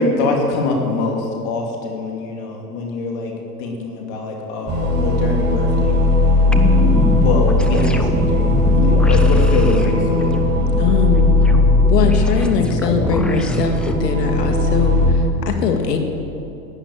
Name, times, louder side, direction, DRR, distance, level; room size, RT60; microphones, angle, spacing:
voice 1, 0.0-3.3 3.6-6.8 7.2-10.4, left 3 dB, 55° left, 0 dB, 3.1 m, -24 dB
sound 1, 4.7-15.1, left 2 dB, 35° right, 4.4 m, -17 dB
sound 2, 6.5-14.0, left 2 dB, ahead, 0.3 m, -24 dB
voice 2, 10.8-11.3 11.9-16.0, left 5 dB, 90° left, 4 dB, 2.0 m, -21 dB
12.0 x 10.0 x 9.0 m, 2.7 s
hypercardioid pair, 120°, 47 cm